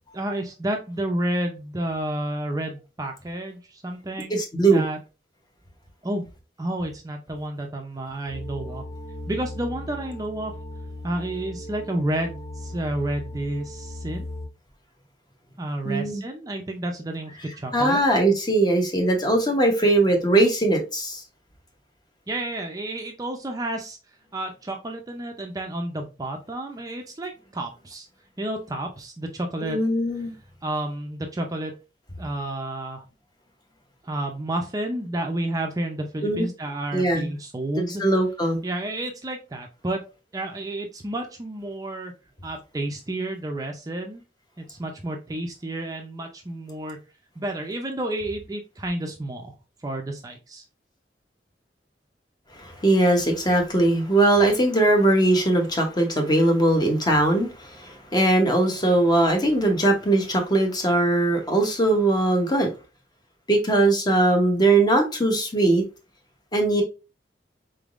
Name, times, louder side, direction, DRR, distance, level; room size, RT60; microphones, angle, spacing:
voice 1, 0.1-4.4 4.7-5.0 6.0-6.3 6.6-8.8 9.3-10.5 11.0-14.3 15.6-18.0 22.3-24.0 24.3-28.1 28.4-29.8 30.6-31.7 32.2-33.0 34.0-38.0 38.6-40.0 40.3-42.1 42.4-44.2 44.6-47.0 47.4-49.5 49.8-50.6, right 1 dB, 20° right, 3 dB, 0.5 m, -30 dB
voice 2, 4.3-4.8 15.8-16.2 17.7-21.2 29.6-30.3 36.2-36.5 36.9-37.3 38.0-38.6 52.6-62.7 63.5-65.8 66.5-66.8, right 2 dB, 25° left, 3 dB, 0.9 m, -20 dB
sound 1, 8.3-14.5, left 1 dB, 80° left, 2.1 m, -37 dB
3.9 x 3.5 x 2.4 m, 0.30 s
head